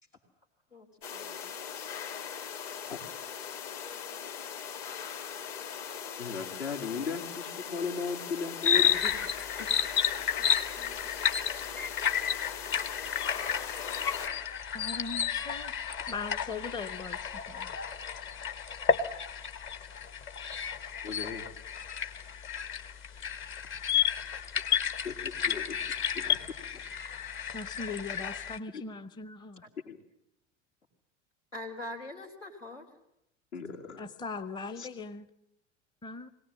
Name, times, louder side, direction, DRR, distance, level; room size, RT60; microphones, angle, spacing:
voice 1, 0.7-1.4 10.4-10.9 29.6-29.7 31.5-32.9, left 1 dB, 85° left, 0 dB, 3.4 m, -44 dB
sound 1, 1.0-14.3, left 8 dB, 50° left, 2.3 m, -40 dB
voice 2, 6.2-9.1 9.6-9.7 21.0-21.5 25.0-25.8 26.1-26.4 26.7-26.9 28.7-28.8 29.8-30.0 33.5-34.0 34.8-34.9, left 5 dB, 65° left, 2 dB, 2.4 m, -37 dB
sound 2, 8.6-28.6, left 8 dB, 35° left, 1.0 m, -32 dB
voice 3, 14.7-17.7 27.5-29.6 34.0-35.3 36.0-36.3, left 4 dB, 10° left, 12 dB, 0.7 m, -40 dB
21.5 x 18.0 x 7.6 m, 0.79 s
figure-of-eight pair, 75°, 36 cm